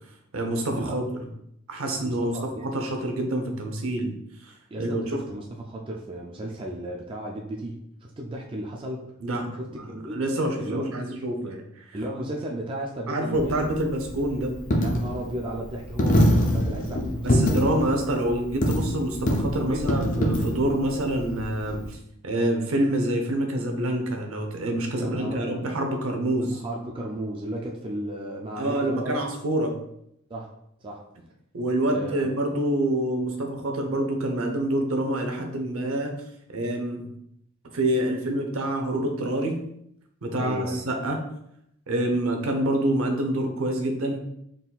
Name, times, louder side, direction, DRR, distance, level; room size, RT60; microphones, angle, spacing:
voice 1, 0.3-1.3 1.7-4.1 4.4-5.2 9.2-11.6 13.1-14.5 17.2-22.0 22.2-26.6 28.6-29.8 31.5-36.1 36.5-37.1 37.7-39.6 40.2-41.2 41.9-44.2, right 1 dB, 70° right, 3 dB, 0.7 m, -27 dB
voice 2, 2.0-2.7 4.7-9.0 9.5-10.2 10.6-10.9 11.4-11.5 11.9-13.8 14.8-17.6 19.6-20.1 25.0-25.7 26.6-29.2 30.3-30.5 30.8-31.0 31.9-32.3 40.4-40.9, right 1 dB, 25° right, -1 dB, 0.3 m, -34 dB
Coin (dropping), 13.3-21.9, equal, 35° left, 0.6 m, -25 dB
4.0 x 3.7 x 2.3 m, 0.75 s
head